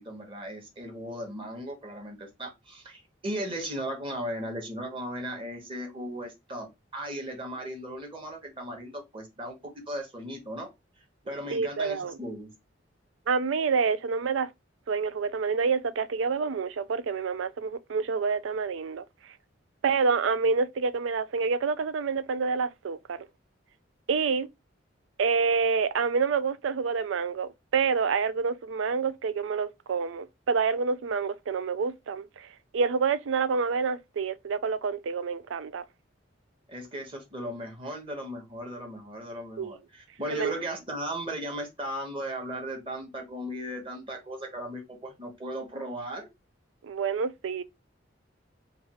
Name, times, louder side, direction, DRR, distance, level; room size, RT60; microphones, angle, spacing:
voice 1, 0.0-10.7 11.2-12.5 36.7-46.3, right 1 dB, 25° right, 1.1 m, -37 dB
voice 2, 11.5-12.2 13.3-14.5 14.9-19.0 19.8-23.3 24.1-24.5 25.2-32.5 32.7-35.8 39.6-39.7 40.3-40.5 46.8-47.6, right 5 dB, 85° right, 0.4 m, -27 dB
3.2 x 2.4 x 4.2 m
head